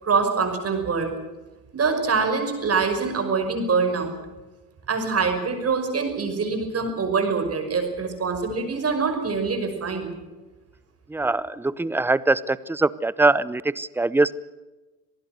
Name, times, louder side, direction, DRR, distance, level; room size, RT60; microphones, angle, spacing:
voice 1, 0.0-1.1 1.7-4.1 4.9-10.1, right 5 dB, 30° right, 5 dB, 5.8 m, -24 dB
voice 2, 11.1-14.3, right 2 dB, 5° right, 20 dB, 0.7 m, -22 dB
26.0 x 19.5 x 6.7 m, 1.2 s
figure-of-eight pair, 70°, 48 cm